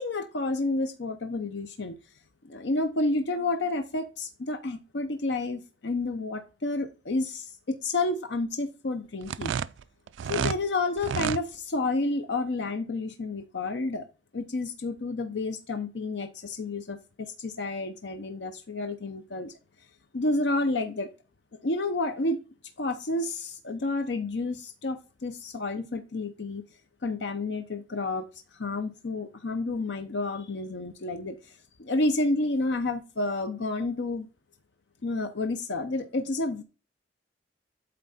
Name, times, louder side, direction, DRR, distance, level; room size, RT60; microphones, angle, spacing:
voice 1, 0.0-1.9 2.4-9.5 10.3-14.1 14.3-19.5 20.1-21.1 21.6-22.4 22.8-26.6 27.0-28.3 28.5-34.3 35.0-36.6, left 2 dB, 70° left, 7 dB, 0.7 m, -30 dB
sound 1, 9.2-10.6 11.0-11.4, right 7 dB, 80° right, 0.3 m, -29 dB
8.5 x 3.4 x 4.1 m, 0.31 s
head